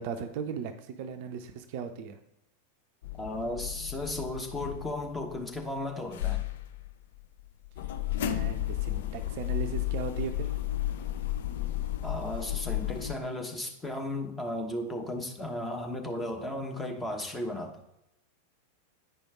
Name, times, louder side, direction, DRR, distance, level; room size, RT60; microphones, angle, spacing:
voice 1, 0.0-2.2 8.2-10.5, right 6 dB, 45° right, 8 dB, 0.5 m, -37 dB
sound 1, 3.0-5.8 6.1-13.1, left 13 dB, 55° left, 0.5 m, -33 dB
voice 2, 3.2-6.4 12.0-17.8, left 1 dB, 10° left, 2 dB, 1.1 m, -35 dB
9.1 x 5.1 x 3.5 m, 0.85 s
figure-of-eight pair, 90°, 0 cm